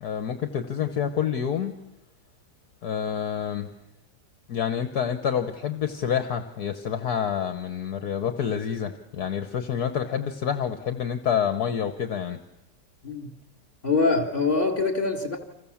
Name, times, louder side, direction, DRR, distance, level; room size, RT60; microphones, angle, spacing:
voice 1, 0.0-1.8 2.8-3.7 4.5-12.4, left 8 dB, 60° left, 8 dB, 1.7 m, -28 dB
voice 2, 13.8-15.4, left 3 dB, 30° left, 4 dB, 3.3 m, -24 dB
30.0 x 26.5 x 7.3 m, 0.94 s
omnidirectional pair, 1.9 m